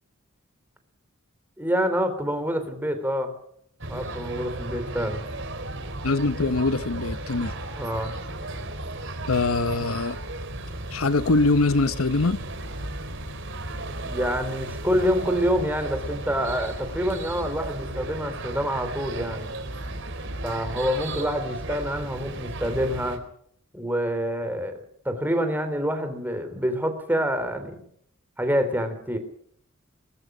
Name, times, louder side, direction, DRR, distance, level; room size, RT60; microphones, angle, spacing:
voice 1, 1.6-3.3 3.9-5.2 7.8-8.1 14.0-19.5 20.4-23.2 23.7-27.8 28.4-29.2, equal, 10° right, 3.6 m, -27 dB
sound 1, 3.8-23.2, right 2 dB, 60° right, 3.9 m, -35 dB
voice 2, 6.0-7.5 9.3-10.2 10.9-12.4, left 3 dB, 90° left, 1.0 m, -23 dB
22.5 x 20.5 x 6.3 m
head